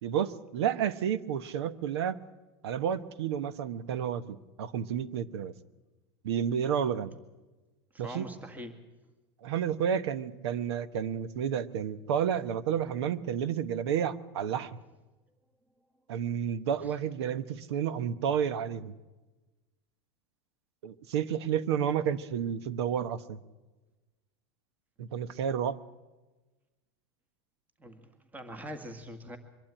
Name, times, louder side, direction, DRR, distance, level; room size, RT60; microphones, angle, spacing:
voice 1, 0.0-2.2 2.6-5.5 6.2-7.1 8.0-8.3 9.4-14.8 16.1-18.9 20.8-23.4 25.0-25.8, right 8 dB, 80° right, 15 dB, 1.1 m, -31 dB
voice 2, 7.9-8.8 16.8-16.9 27.8-29.4, equal, 10° right, 8 dB, 1.8 m, -43 dB
23.5 x 12.0 x 10.0 m, 1.2 s
supercardioid pair, 135°, 13 cm